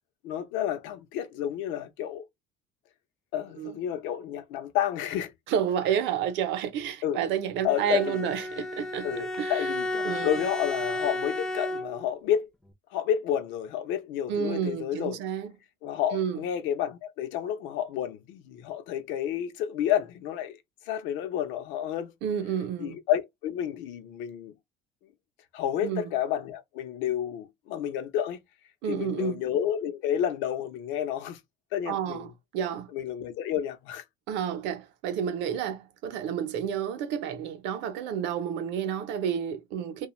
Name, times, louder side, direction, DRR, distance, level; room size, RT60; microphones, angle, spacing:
voice 1, 0.2-2.2 3.3-5.3 7.0-7.2 7.6-8.3 9.0-12.5 12.9-15.2 15.8-20.6 20.8-22.1 22.8-24.5 25.5-28.4 28.9-31.4 31.7-32.3 32.9-34.0, left 10 dB, 80° left, 0.6 m, -30 dB
voice 2, 5.5-9.1 9.4-9.6 10.0-10.4 14.3-15.5 16.1-16.4 22.2-23.0 25.8-26.1 28.8-29.4 31.9-32.9 34.3-40.1, right 8 dB, 70° right, 0.6 m, -30 dB
Bowed string instrument, 7.7-12.2, left 1 dB, 5° left, 0.4 m, -33 dB
2.4 x 2.3 x 2.9 m
cardioid pair, 165°, 19 cm